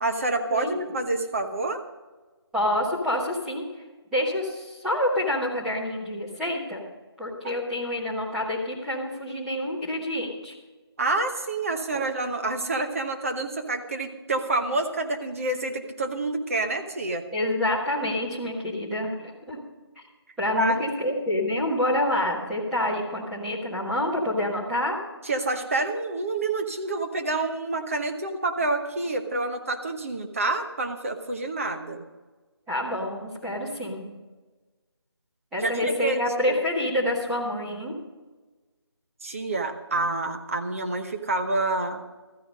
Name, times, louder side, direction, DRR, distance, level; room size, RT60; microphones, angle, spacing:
voice 1, 0.0-1.8 11.0-17.2 20.6-20.8 25.2-32.0 35.6-36.6 39.2-42.0, right 2 dB, 30° right, 4 dB, 1.1 m, -28 dB
voice 2, 2.5-3.6 4.1-6.8 7.2-10.5 11.9-12.0 17.3-19.6 20.4-25.0 32.7-34.0 35.5-38.0, left 1 dB, ahead, -9 dB, 1.3 m, -27 dB
14.0 x 10.0 x 5.3 m, 1.3 s
figure-of-eight pair, 165°, 14 cm